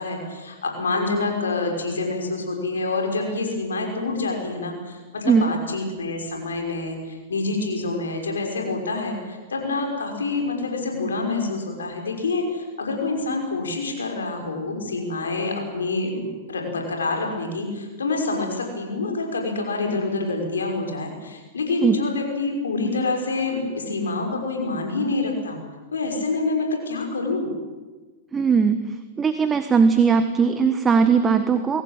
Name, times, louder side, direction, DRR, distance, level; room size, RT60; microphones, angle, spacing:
voice 1, 0.0-25.6 25.9-27.5, left 3 dB, 80° left, 2 dB, 5.9 m, -27 dB
voice 2, 28.3-28.8 29.2-31.8, right 5 dB, 20° right, 8 dB, 1.5 m, -19 dB
23.5 x 17.0 x 9.0 m, 1.3 s
hypercardioid pair, 105°, 0 cm